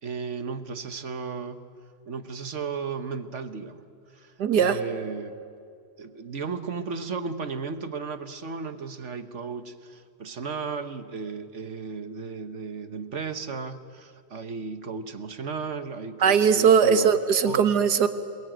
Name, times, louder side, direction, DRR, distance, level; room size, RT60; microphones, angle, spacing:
voice 1, 0.0-1.6 2.1-3.8 4.1-5.3 6.0-17.1 17.5-17.7, right 5 dB, 50° right, 11 dB, 1.3 m, -35 dB
voice 2, 4.4-4.8 16.2-18.1, right 7 dB, 75° right, 10 dB, 1.9 m, -19 dB
27.0 x 21.5 x 9.2 m, 2.4 s
omnidirectional pair, 1.8 m